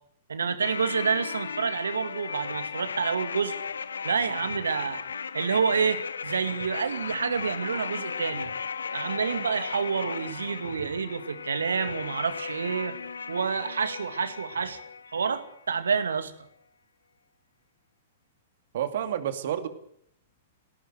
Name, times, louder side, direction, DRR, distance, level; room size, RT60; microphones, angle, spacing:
voice 1, 0.3-3.6 4.0-5.0 5.3-8.5 8.9-12.9 13.3-14.8 15.1-16.3, right 6 dB, 75° right, 10 dB, 2.1 m, -28 dB
sound 1, 0.6-15.6 15.9-16.0, left 6 dB, 75° left, 1.0 m, -36 dB
voice 2, 18.7-19.7, right 10 dB, 55° right, 9 dB, 2.5 m, -29 dB
19.0 x 17.0 x 9.2 m, 0.69 s
figure-of-eight pair, 105°, 0 cm